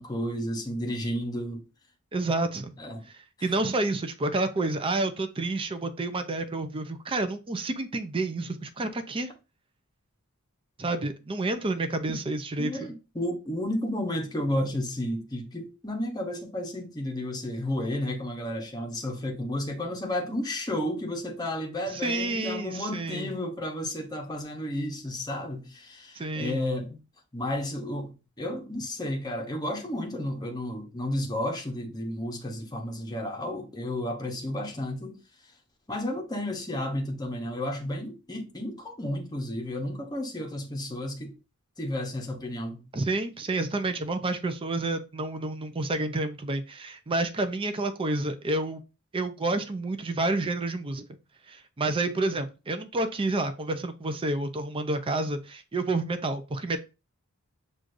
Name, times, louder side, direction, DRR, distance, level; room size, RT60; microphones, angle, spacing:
voice 1, 0.0-1.6 2.8-3.1 3.4-3.5 12.1-12.2 12.6-27.0 27.3-35.2 35.9-41.4 41.8-42.9, left 1 dB, 20° left, 0.8 m, -32 dB
voice 2, 2.1-2.7 3.1-9.3 10.8-12.7 21.9-23.3 26.2-26.6 42.9-48.8 49.1-51.0 51.5-56.8, right 2 dB, 25° right, 0.5 m, -29 dB
6.2 x 2.5 x 2.5 m
head